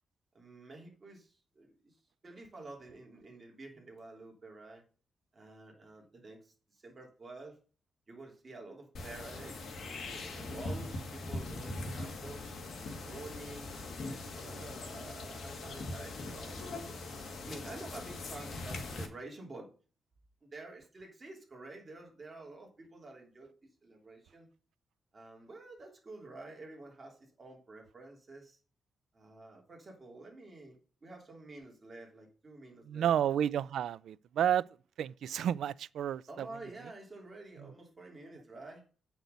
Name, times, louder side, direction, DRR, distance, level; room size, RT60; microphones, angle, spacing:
voice 1, 0.3-2.0 2.2-4.8 5.3-7.6 8.1-12.6 13.0-16.9 17.4-19.7 20.4-23.5 23.8-24.5 25.1-28.6 29.1-33.1 36.3-38.8, right 2 dB, 30° right, 2.9 m, -49 dB
sound 1, 8.9-19.1, left 2 dB, 60° left, 2.1 m, -41 dB
voice 2, 32.9-34.7 35.0-36.5 37.6-37.7, right 10 dB, 85° right, 0.3 m, -31 dB
8.3 x 6.0 x 5.2 m
wide cardioid pair, 145°, 0 cm